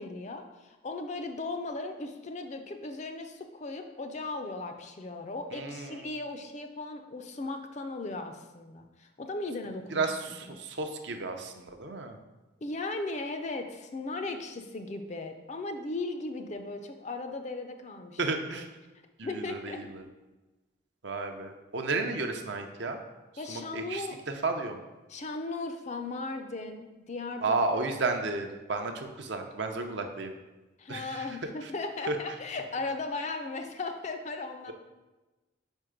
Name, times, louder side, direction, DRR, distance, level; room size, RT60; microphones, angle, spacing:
voice 1, 0.0-10.0 12.6-18.2 18.5-18.6 19.2-19.8 23.4-24.2 25.1-27.8 30.8-34.7, left 3 dB, 35° left, 6 dB, 0.4 m, -37 dB
voice 2, 5.5-6.0 9.9-12.2 18.2-18.7 19.2-20.0 21.0-23.0 23.5-24.8 27.4-30.4 30.9-31.3 31.6-31.7 32.1-32.2, right 3 dB, 60° right, 5 dB, 0.6 m, -32 dB
4.6 x 4.5 x 5.0 m, 1.1 s
head